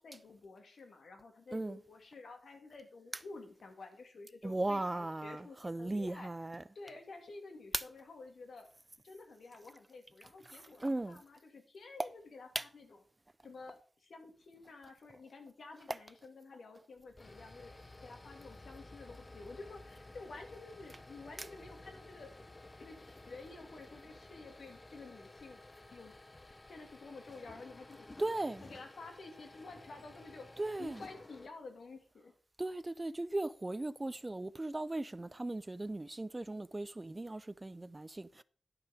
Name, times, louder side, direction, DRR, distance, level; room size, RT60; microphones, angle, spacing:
voice 1, 0.0-6.3 6.7-8.7 9.0-12.9 13.4-22.4 22.8-25.6 25.9-26.1 26.7-28.1 28.6-30.5 30.8-32.3, left 3 dB, 75° left, 2.2 m, -51 dB
voice 2, 4.4-6.6 7.7-7.8 10.5-11.2 12.5-12.7 15.9-16.0 21.4-21.5 28.2-28.6 30.6-31.0 32.6-38.4, right 2 dB, 20° right, 0.4 m, -37 dB
sound 1, 17.0-31.5, left 2 dB, 25° left, 0.7 m, -54 dB
11.0 x 5.8 x 4.9 m
wide cardioid pair, 105°, 0 cm